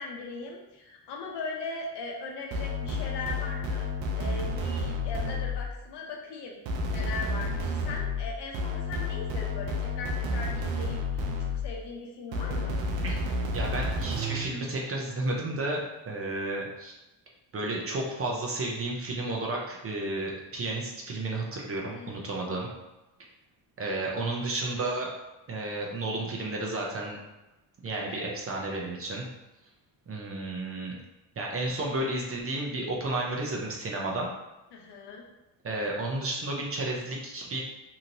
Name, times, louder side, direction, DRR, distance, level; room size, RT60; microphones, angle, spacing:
voice 1, 0.0-3.9 4.1-6.6 6.9-12.8 21.9-22.6 27.9-28.3 34.7-35.2, left 3 dB, 60° left, 0 dB, 0.8 m, -39 dB
sound 1, 2.5-5.8 6.7-11.8 12.3-14.5, left 2 dB, 75° right, 0.6 m, -31 dB
voice 2, 13.5-16.9 17.5-22.7 23.8-25.1 25.5-27.2 27.8-29.3 30.1-31.0 31.4-34.3 35.6-37.6, right 2 dB, 30° right, -2 dB, 0.6 m, -32 dB
2.8 x 2.8 x 2.6 m, 1.0 s
cardioid pair, 105°, 45 cm